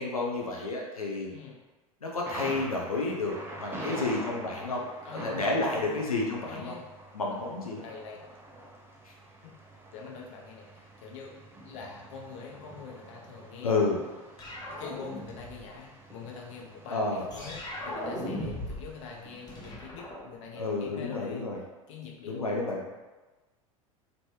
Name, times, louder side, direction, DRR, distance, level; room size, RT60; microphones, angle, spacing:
voice 1, 0.0-1.3 2.0-4.9 5.2-6.7 7.1-7.8 9.0-9.1 13.6-14.0 16.9-17.2 20.6-21.6 22.3-22.8, left 3 dB, 90° left, -2 dB, 0.5 m, -30 dB
voice 2, 1.3-1.6 3.8-4.1 4.5-5.3 5.6-6.0 6.4-6.9 7.3-7.5 7.8-8.2 9.4-9.5 9.9-11.4 11.6-13.7 14.7-21.4 21.9-23.0, left 5 dB, 60° left, -1 dB, 0.8 m, -44 dB
Thunder, 2.3-19.7, right 1 dB, 10° right, 0.5 m, -45 dB
sound 1, 14.4-15.7 17.3-19.0 19.2-20.9, left 1 dB, 20° left, 0.9 m, -38 dB
3.2 x 2.6 x 3.0 m, 1.2 s
figure-of-eight pair, 85°, 18 cm